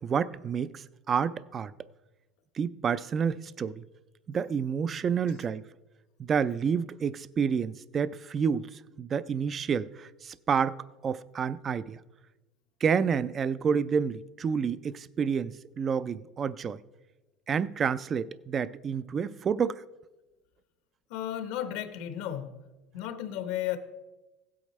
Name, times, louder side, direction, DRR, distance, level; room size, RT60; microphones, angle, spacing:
voice 1, 0.0-1.7 2.6-3.8 4.3-5.6 6.2-10.8 11.0-12.0 12.8-16.8 17.5-19.8, right 6 dB, 30° right, 0.3 m, -29 dB
voice 2, 21.1-22.6 22.9-23.8, left 11 dB, 70° left, 1.0 m, -34 dB
16.0 x 8.5 x 3.1 m
cardioid pair, 135°, 0 cm